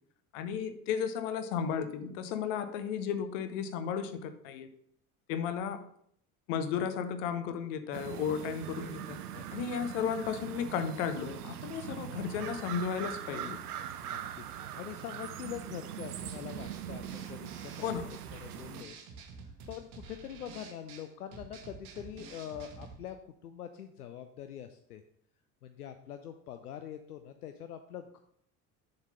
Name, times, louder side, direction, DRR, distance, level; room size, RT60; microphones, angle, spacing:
voice 1, 0.3-4.7 5.3-5.8 6.5-9.2 9.5-13.6 17.8-18.1, left 7 dB, 55° left, 10 dB, 0.8 m, -34 dB
sound 1, 7.9-18.8, right 10 dB, 75° right, 0.6 m, -42 dB
voice 2, 14.0-18.9 19.4-25.0 25.6-28.2, left 10 dB, 75° left, 9 dB, 0.5 m, -44 dB
sound 2, 16.2-23.0, right 4 dB, 50° right, 1.1 m, -49 dB
7.0 x 4.0 x 5.1 m, 0.67 s
figure-of-eight pair, 60°, 46 cm